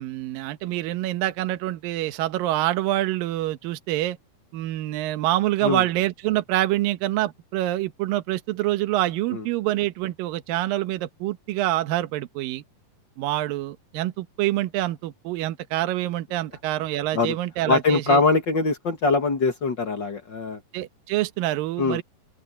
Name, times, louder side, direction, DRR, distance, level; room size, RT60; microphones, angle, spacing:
voice 1, 0.0-4.2 4.5-12.6 13.2-18.2 20.7-22.0, right 15 dB, 70° right, 2.7 m, -26 dB
voice 2, 17.7-20.6 21.8-22.0, left 3 dB, 45° left, 1.4 m, -22 dB
open air
omnidirectional pair, 4.5 m